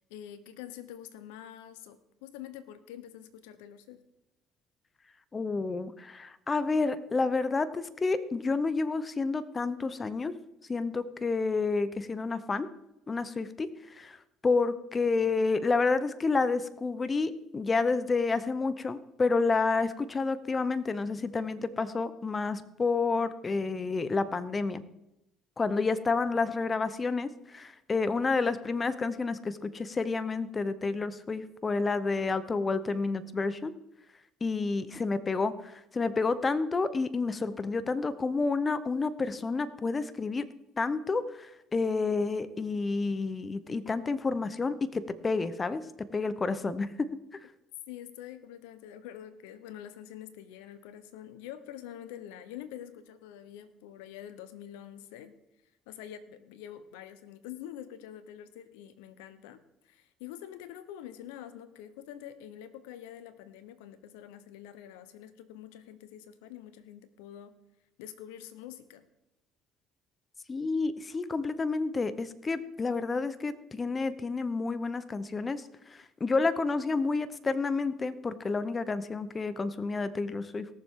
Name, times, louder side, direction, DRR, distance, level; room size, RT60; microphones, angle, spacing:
voice 1, 0.0-4.0 47.9-55.3 55.9-67.6 68.0-69.0, left 11 dB, 90° left, 12 dB, 0.9 m, -46 dB
voice 2, 5.3-10.3 10.7-12.7 13.1-14.2 14.4-24.8 25.6-33.7 34.4-40.4 40.8-45.8 46.1-47.1 70.5-75.6 75.9-80.7, left 4 dB, 30° left, 14 dB, 0.8 m, -29 dB
18.0 x 7.1 x 3.7 m, 0.88 s
supercardioid pair, 85°, 0 cm